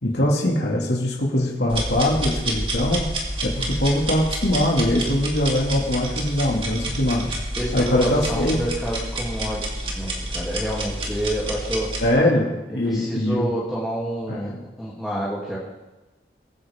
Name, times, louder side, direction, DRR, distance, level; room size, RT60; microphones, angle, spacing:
voice 1, 0.0-3.0 3.4-7.3 7.7-8.6 12.0-13.6 14.3-14.6, left 1 dB, 75° left, -2 dB, 2.4 m, -22 dB
sound 1, 1.7-12.1, right 1 dB, 30° right, 2.4 m, -29 dB
voice 2, 7.6-11.9 12.8-15.6, right 1 dB, ahead, -9 dB, 2.8 m, -28 dB
23.0 x 9.9 x 3.7 m, 1.1 s
head